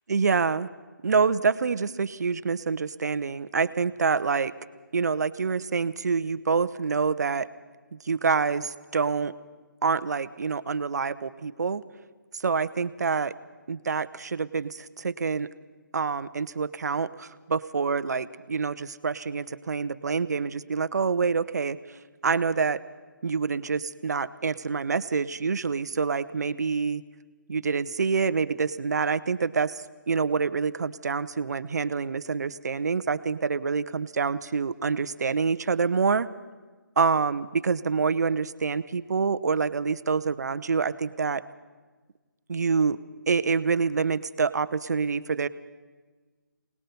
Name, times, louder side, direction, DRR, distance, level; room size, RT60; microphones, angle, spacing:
voice 1, 0.1-0.7 1.0-4.5 4.9-7.5 7.9-9.3 9.8-11.8 12.4-13.3 13.7-15.5 15.9-21.8 22.2-22.8 23.2-27.0 27.5-36.3 37.0-41.4 42.5-43.0 43.3-45.5, right 5 dB, 55° right, 14 dB, 0.8 m, -26 dB
25.0 x 19.0 x 5.5 m, 1.3 s
figure-of-eight pair, 160°, 11 cm